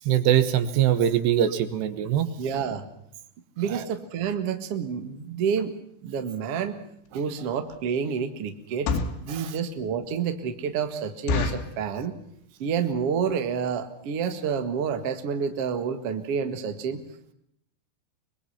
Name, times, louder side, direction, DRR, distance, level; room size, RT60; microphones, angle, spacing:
voice 1, 0.0-2.3 3.7-3.9 9.3-9.5, right 10 dB, 70° right, 11 dB, 3.0 m, -23 dB
voice 2, 2.4-2.9 3.6-5.7 6.0-6.8 7.1-8.9 9.2-12.2 12.6-17.0, right 6 dB, 90° right, 7 dB, 1.3 m, -29 dB
sound 1, 7.1-7.2 7.7-7.9 8.6-9.3 9.8-9.9 10.2-10.3 10.7-10.8 11.3-11.8 12.4-12.7 12.9-13.0 13.3-13.5 14.1-14.2 14.4-14.6 14.9-15.0 15.2-15.3, left 4 dB, 65° left, 3.9 m, -28 dB
24.0 x 22.0 x 5.8 m, 0.72 s
omnidirectional pair, 5.8 m